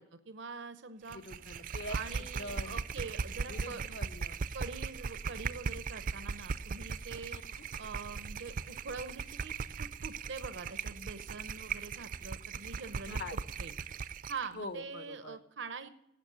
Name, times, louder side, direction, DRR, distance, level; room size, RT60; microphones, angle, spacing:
voice 1, 0.0-1.2 1.9-3.8 4.5-7.4 7.8-13.7 14.3-15.9, right 4 dB, 90° right, 11 dB, 0.8 m, -44 dB
voice 2, 1.1-2.8 3.5-4.4 7.3-7.6 13.0-13.4 14.5-15.4, left 2 dB, 75° left, 9 dB, 1.2 m, -44 dB
sound 1, 1.1-14.5, right 5 dB, 45° right, 0.4 m, -39 dB
12.5 x 8.4 x 8.6 m, 0.86 s
head